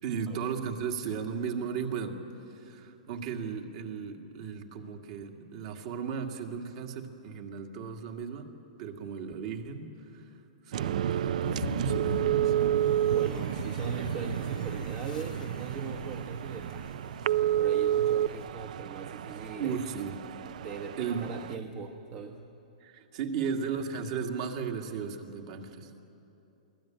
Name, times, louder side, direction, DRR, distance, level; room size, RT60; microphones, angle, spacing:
voice 1, 0.0-2.2 2.5-8.5 8.8-10.3 10.6-12.6 19.6-20.2 21.0-21.4 22.8-25.9, right 6 dB, 45° right, 4 dB, 1.9 m, -36 dB
sound 1, 10.7-21.5, right 11 dB, 65° right, 0.4 m, -30 dB
sound 2, 11.4-18.5, left 6 dB, 75° left, 0.6 m, -42 dB
voice 2, 13.0-19.8 20.6-22.4, right 6 dB, 25° right, 4 dB, 1.0 m, -40 dB
23.5 x 16.5 x 8.9 m, 2.8 s
hypercardioid pair, 160°, 4 cm